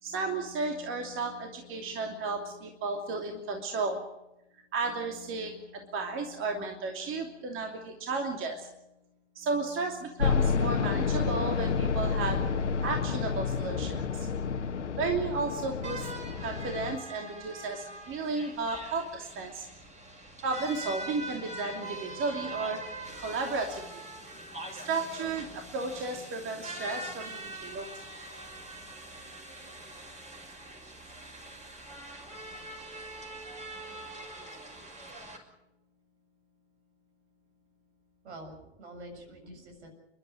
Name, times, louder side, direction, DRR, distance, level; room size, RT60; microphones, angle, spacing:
voice 1, 0.0-4.1 4.7-8.8 9.3-12.5 12.8-14.3 15.0-19.7 20.4-24.0 24.7-28.1 39.4-39.5, right 3 dB, 35° right, 3 dB, 3.0 m, -34 dB
sound 1, 10.2-17.0, left 5 dB, 80° left, 1.5 m, -29 dB
sound 2, 15.8-35.4, right 2 dB, 20° right, 6.1 m, -43 dB
voice 2, 38.2-39.9, right 1 dB, 70° right, 4 dB, 7.3 m, -46 dB
30.0 x 12.5 x 9.4 m, 0.89 s
figure-of-eight pair, 90°, 35 cm